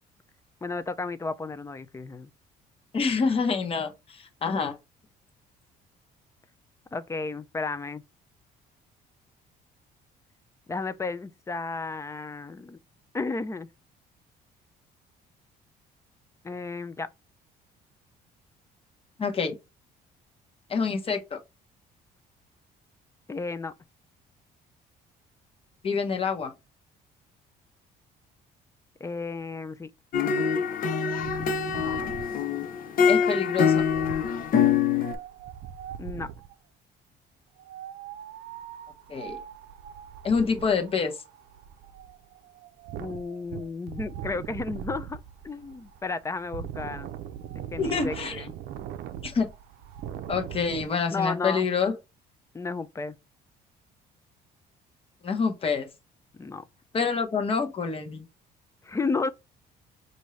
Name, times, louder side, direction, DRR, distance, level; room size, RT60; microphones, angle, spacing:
voice 1, 0.6-2.3 6.9-8.0 10.7-12.8 13.1-13.7 16.4-17.1 23.3-23.7 29.0-29.9 36.0-36.3 43.0-47.1 47.7-48.5 51.1-51.7 52.5-53.2 56.3-56.6 58.8-59.3, left 3 dB, 15° left, 0.4 m, -33 dB
voice 2, 2.9-4.8 19.2-19.6 20.7-21.4 25.8-26.5 33.1-33.9 39.1-39.4 40.2-41.2 47.8-48.5 49.2-49.5 50.3-51.9 55.2-55.9 56.9-58.3, left 5 dB, 35° left, 1.1 m, -27 dB
sound 1, 30.1-35.2, left 7 dB, 55° left, 0.7 m, -24 dB
Wind, 31.1-36.5 37.6-50.9, right 10 dB, 75° right, 0.5 m, -41 dB
5.3 x 2.7 x 3.1 m
cardioid pair, 110°, 17 cm